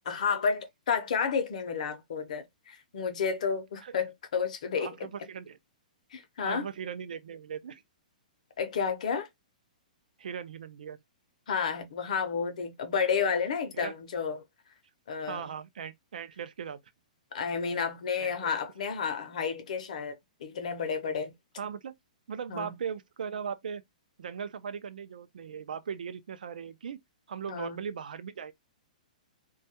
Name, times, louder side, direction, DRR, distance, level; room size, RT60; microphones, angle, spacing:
voice 1, 0.0-5.0 6.1-6.7 8.6-9.3 11.5-14.5 15.1-15.5 17.3-21.3 22.5-22.7 27.5-27.8, left 6 dB, 55° left, 0.6 m, -31 dB
voice 2, 4.8-5.6 6.4-7.8 10.2-11.0 13.7-13.9 15.2-16.8 18.2-18.5 21.6-21.9 22.3-23.8 24.2-27.0 27.3-28.5, right 7 dB, 80° right, 0.4 m, -38 dB
2.3 x 2.2 x 2.8 m
hypercardioid pair, 170°, 5 cm